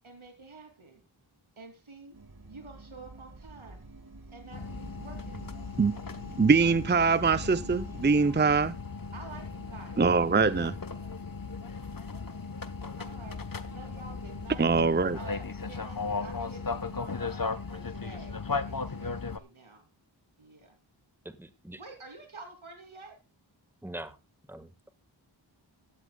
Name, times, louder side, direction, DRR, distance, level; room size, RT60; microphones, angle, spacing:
voice 1, 0.0-1.0 1.6-2.2 2.5-3.8 4.3-5.6 9.1-11.2 13.0-13.4 13.7-14.7 15.2-19.9 20.4-20.7 21.8-23.2, right 3 dB, 85° right, 3.0 m, -49 dB
sound 1, 2.1-8.2, right 2 dB, 50° right, 1.9 m, -47 dB
sound 2, 4.5-19.4, left 4 dB, 45° left, 1.1 m, -37 dB
voice 2, 6.4-8.8 10.0-10.7 14.6-15.2, right 4 dB, 25° right, 0.6 m, -23 dB
voice 3, 21.2-21.8 23.8-24.2 24.5-24.9, right 1 dB, 5° right, 1.5 m, -43 dB
15.5 x 12.5 x 2.3 m
wide cardioid pair, 45°, 47 cm